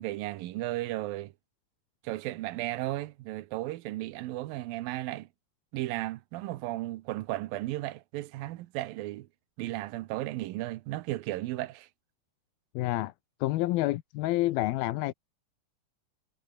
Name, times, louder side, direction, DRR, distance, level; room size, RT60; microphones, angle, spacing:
voice 1, 0.0-1.3 2.0-5.3 5.7-9.3 9.6-11.9, right 17 dB, 80° right, 2.6 m, -35 dB
voice 2, 12.8-13.1 13.4-15.1, left 17 dB, 80° left, 2.7 m, -28 dB
omnidirectional pair, 4.3 m